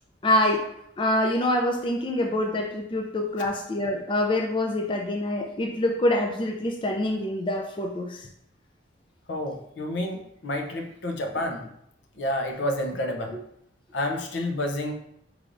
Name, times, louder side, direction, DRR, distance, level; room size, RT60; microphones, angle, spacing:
voice 1, 0.2-0.7 1.0-8.2, left 1 dB, 25° left, 1 dB, 0.4 m, -25 dB
voice 2, 9.3-11.6 12.2-13.4 13.9-14.9, left 1 dB, 75° left, 3 dB, 0.7 m, -29 dB
4.7 x 3.3 x 2.6 m, 0.74 s
head